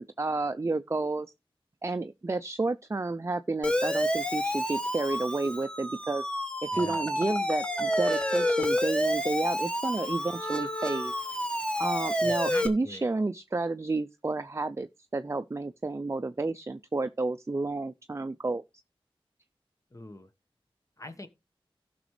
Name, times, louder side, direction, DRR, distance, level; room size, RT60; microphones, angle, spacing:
voice 1, 0.0-1.3 1.8-6.2 6.6-11.1 11.8-18.6, right 3 dB, 30° right, 0.5 m, -31 dB
Siren, 3.6-12.7, equal, 10° left, 1.4 m, -29 dB
voice 2, 6.7-7.1 12.2-13.1 19.9-20.3 21.0-21.3, left 1 dB, 35° left, 1.3 m, -43 dB
16.0 x 6.0 x 3.2 m
wide cardioid pair, 60°, 10 cm